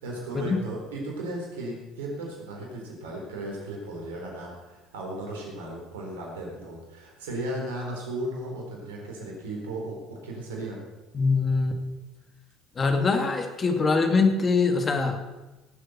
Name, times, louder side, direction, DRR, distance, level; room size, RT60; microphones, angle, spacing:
voice 1, 0.0-10.8, right 1 dB, 80° right, -1 dB, 4.2 m, -35 dB
voice 2, 11.1-11.8 12.8-15.2, left 4 dB, 35° left, 5 dB, 2.3 m, -23 dB
18.5 x 8.0 x 6.0 m, 1.1 s
hypercardioid pair, 65°, 0 cm